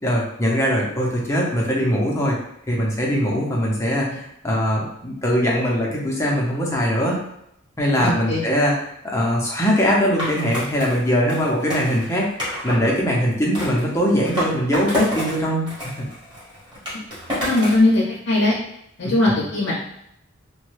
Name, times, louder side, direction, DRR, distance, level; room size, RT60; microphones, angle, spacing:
voice 1, 0.0-2.4 2.7-7.2 7.8-8.7 9.0-16.1 19.0-19.1, equal, 15° left, -3 dB, 0.6 m, -21 dB
voice 2, 8.0-8.5 17.4-18.5 19.0-19.7, left 2 dB, 55° left, -5 dB, 0.6 m, -19 dB
Skateboard, 10.2-12.9 13.5-15.4 15.7-17.9, equal, 20° right, 1.1 m, -29 dB
3.0 x 2.2 x 3.1 m, 0.77 s
head